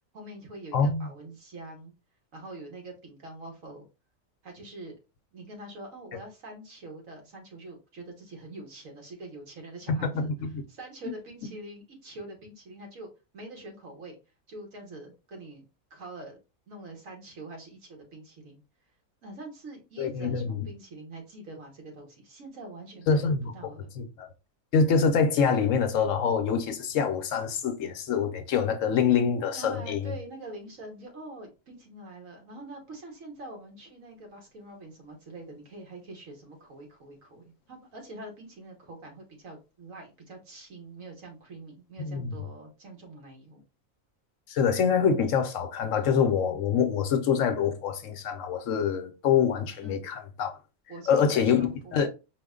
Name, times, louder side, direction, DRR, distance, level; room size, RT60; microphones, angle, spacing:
voice 1, 0.1-1.9 2.3-3.8 4.4-4.9 5.3-10.3 10.7-13.1 13.3-14.2 14.5-16.3 16.7-18.6 19.2-23.9 29.5-43.6 49.8-50.1 50.9-52.1, right 2 dB, 70° right, 1.6 m, -44 dB
voice 2, 0.7-1.1 9.9-10.6 20.0-20.7 23.1-23.5 24.0-24.3 24.7-30.1 42.0-42.4 44.5-50.5 51.1-52.1, left 6 dB, 70° left, 1.0 m, -25 dB
4.8 x 2.2 x 3.6 m
omnidirectional pair, 1.5 m